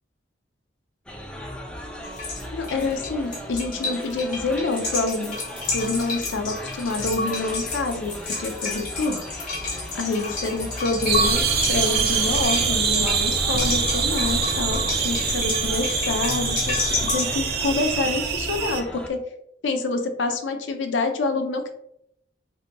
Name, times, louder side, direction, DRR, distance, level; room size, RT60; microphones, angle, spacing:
sound 1, 1.1-19.1, equal, 5° left, 0.4 m, -37 dB
sound 2, 2.0-17.3, left 3 dB, 50° left, 1.1 m, -31 dB
voice 1, 2.5-5.4 5.7-9.2 9.9-11.4 11.7-19.2 19.6-21.7, left 3 dB, 80° left, 5 dB, 0.5 m, -27 dB
sound 3, 11.1-18.8, right 5 dB, 55° right, 0.4 m, -24 dB
3.7 x 2.8 x 2.2 m, 0.74 s
head